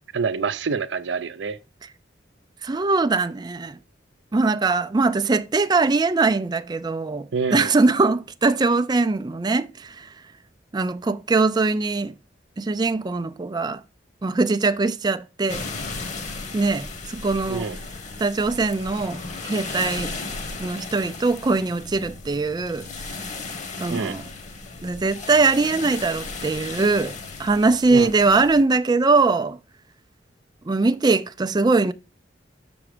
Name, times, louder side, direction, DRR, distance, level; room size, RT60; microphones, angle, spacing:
voice 1, 0.1-1.6 7.3-7.8 17.5-17.8 23.9-24.2 27.9-28.1, right 5 dB, 80° right, 0.6 m, -26 dB
voice 2, 2.6-3.8 4.3-10.1 10.7-12.1 12.6-13.8 14.2-15.6 16.5-17.7 18.2-20.1 20.6-23.3 23.8-24.2 24.8-29.6 30.7-31.9, right 3 dB, 25° right, 0.4 m, -22 dB
sound 1, 15.5-28.6, left 3 dB, 40° left, 1.3 m, -35 dB
6.9 x 6.1 x 4.9 m
head